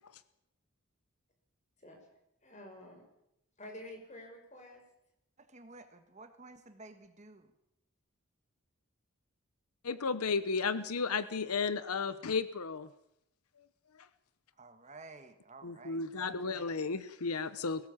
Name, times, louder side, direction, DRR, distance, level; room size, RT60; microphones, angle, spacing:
voice 1, 2.4-3.1 3.6-4.8, left 1 dB, 35° left, 2 dB, 5.6 m, -49 dB
voice 2, 5.4-7.5 14.6-16.7, right 3 dB, 30° right, 8 dB, 1.5 m, -53 dB
voice 3, 9.8-12.9 15.6-17.9, left 4 dB, 90° left, 13 dB, 0.9 m, -33 dB
21.5 x 17.5 x 7.3 m, 0.80 s
head